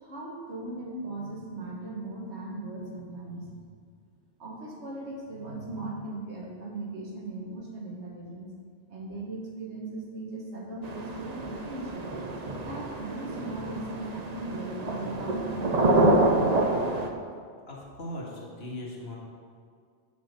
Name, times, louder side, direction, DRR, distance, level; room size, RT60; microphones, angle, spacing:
voice 1, 0.0-3.7 4.4-8.5 8.9-12.1 12.6-16.5, right 2 dB, 80° right, -2 dB, 1.9 m, -38 dB
sound 1, 10.8-17.1, right 2 dB, 40° right, 0.8 m, -27 dB
voice 2, 17.7-19.2, left 1 dB, 65° left, -4 dB, 2.0 m, -39 dB
7.4 x 5.6 x 6.7 m, 2.1 s
omnidirectional pair, 1.1 m